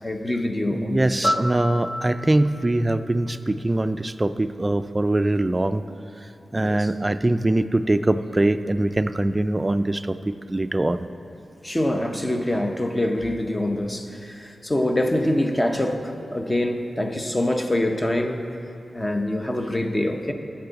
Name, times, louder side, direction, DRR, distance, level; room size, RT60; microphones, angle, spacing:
voice 1, 0.0-1.4 6.6-6.9 11.6-18.5 18.9-20.3, left 1 dB, 20° left, 5 dB, 0.8 m, -25 dB
voice 2, 0.7-5.8 6.5-11.1, right 1 dB, 20° right, 10 dB, 0.3 m, -23 dB
Piano, 1.2-4.2 12.3-12.5, equal, 40° left, 1.2 m, -31 dB
14.5 x 8.9 x 4.1 m, 2.8 s
wide cardioid pair, 90°, 0 cm